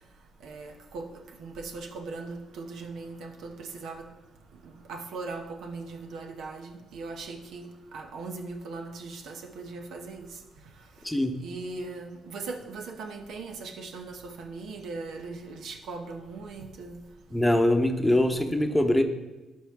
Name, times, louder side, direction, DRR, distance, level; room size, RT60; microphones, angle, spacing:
voice 1, 0.4-1.1 1.4-4.0 4.9-10.3 11.4-17.0, right 3 dB, 70° right, 4 dB, 0.8 m, -39 dB
voice 2, 17.3-19.0, left 1 dB, 10° left, 5 dB, 0.9 m, -23 dB
11.5 x 4.6 x 3.5 m, 1.1 s
hypercardioid pair, 50°, 0 cm